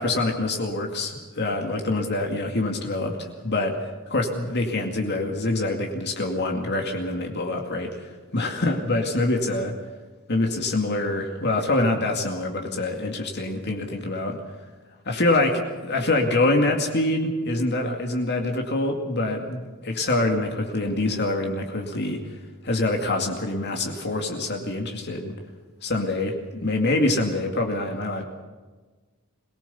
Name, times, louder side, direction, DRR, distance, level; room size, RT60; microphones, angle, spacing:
voice 1, 0.0-9.8 10.3-14.4 15.1-15.6 15.9-22.2 22.6-25.3 25.8-28.2, left 2 dB, 55° left, 2 dB, 2.3 m, -25 dB
23.0 x 18.5 x 7.0 m, 1.3 s
head